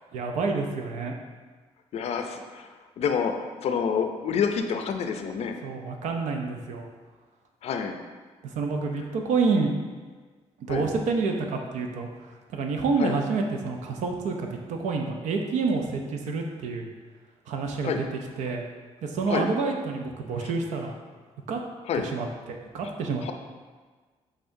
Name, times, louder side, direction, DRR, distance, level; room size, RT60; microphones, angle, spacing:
voice 1, 0.1-1.1 5.6-6.8 8.4-9.7 10.7-12.1 12.5-16.9 17.5-18.6 19.0-21.0 21.5-21.6 22.0-23.2, right 4 dB, 85° right, 3 dB, 0.6 m, -28 dB
voice 2, 1.9-2.7 3.0-5.5 7.6-8.0 10.7-10.9 13.0-13.2 17.8-18.0 19.3-19.5 20.4-20.5 21.9-22.1 23.2-23.3, left 6 dB, 60° left, 5 dB, 0.4 m, -28 dB
5.6 x 3.5 x 2.6 m, 1.4 s
cardioid pair, 100°, 12 cm